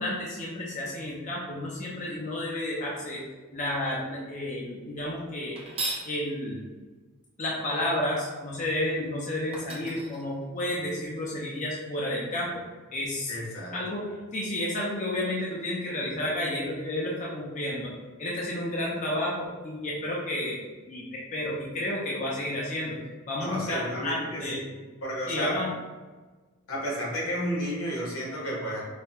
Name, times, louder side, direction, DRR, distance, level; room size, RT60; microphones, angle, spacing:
voice 1, 0.0-3.2 3.5-5.6 6.0-6.6 7.4-12.5 12.9-13.3 13.7-17.9 18.2-20.6 20.9-23.0 23.3-24.6 25.3-25.7, left 1 dB, 35° left, -4 dB, 0.5 m, -31 dB
sound 1, 5.6-6.1 9.0-9.1 9.5-10.9, right 2 dB, 30° right, 0.6 m, -36 dB
voice 2, 13.3-13.7 23.4-24.6 25.0-25.6 26.7-28.8, equal, 85° left, -4 dB, 1.3 m, -32 dB
4.8 x 2.2 x 2.9 m, 1.3 s
head